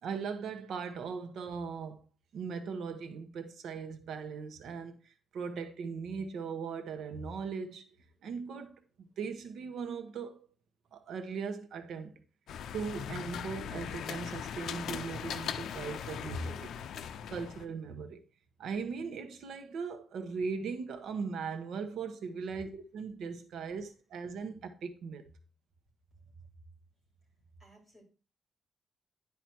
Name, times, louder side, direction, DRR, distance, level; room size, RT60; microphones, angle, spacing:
voice 1, 0.0-2.0 2.3-7.8 8.2-10.5 10.9-12.1 12.7-16.7 17.3-18.2 18.6-25.3, right 5 dB, 70° right, 1.1 m, -39 dB
sound 1, 12.5-17.7, left 8 dB, 80° left, 0.6 m, -39 dB
voice 2, 26.1-26.5 27.2-28.0, right 3 dB, 5° right, 4.7 m, -58 dB
10.5 x 5.0 x 4.5 m
wide cardioid pair, 175°, 0 cm